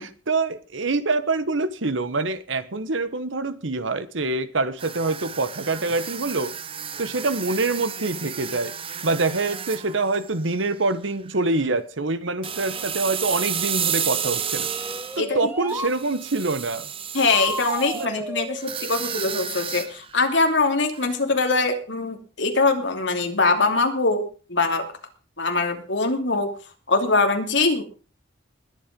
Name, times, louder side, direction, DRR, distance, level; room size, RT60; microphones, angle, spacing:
voice 1, 0.0-6.5 7.0-8.7 9.0-14.7 15.2-16.9 17.5-17.6 17.9-18.2, right 3 dB, 80° right, 1.2 m, -25 dB
sound 1, 4.8-10.9 11.3-11.5 12.4-15.2 15.7-18.1 18.6-20.5 20.9-21.1, right 8 dB, 30° right, 0.9 m, -32 dB
sound 2, 14.1-16.0 17.3-19.4, right 1 dB, 10° right, 1.2 m, -34 dB
voice 2, 17.1-24.8 25.4-26.5 26.9-27.8, left 3 dB, 65° left, 2.9 m, -22 dB
20.5 x 8.7 x 5.3 m
head